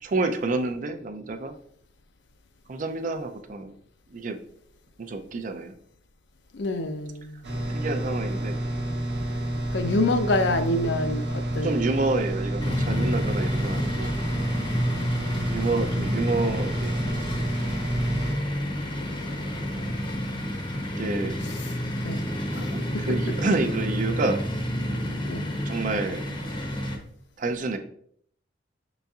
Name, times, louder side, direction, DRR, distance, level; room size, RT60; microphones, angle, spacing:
voice 1, 0.0-1.6 2.7-3.7 4.1-4.4 5.0-5.7 7.7-8.6 11.6-14.1 15.5-17.0 21.0-21.4 22.5-24.4 25.2-25.3 25.7-26.2 27.4-27.8, right 3 dB, 45° right, 0.4 m, -28 dB
voice 2, 6.5-7.4 9.7-11.8 21.4-21.6 22.0-22.3 22.5-22.7 23.1-23.4 25.2-25.6, left 2 dB, 70° left, 0.5 m, -27 dB
sound 1, 7.4-18.4, right 1 dB, 60° right, 0.8 m, -29 dB
sound 2, 12.6-27.0, equal, 25° left, 0.7 m, -30 dB
5.6 x 4.0 x 2.4 m
head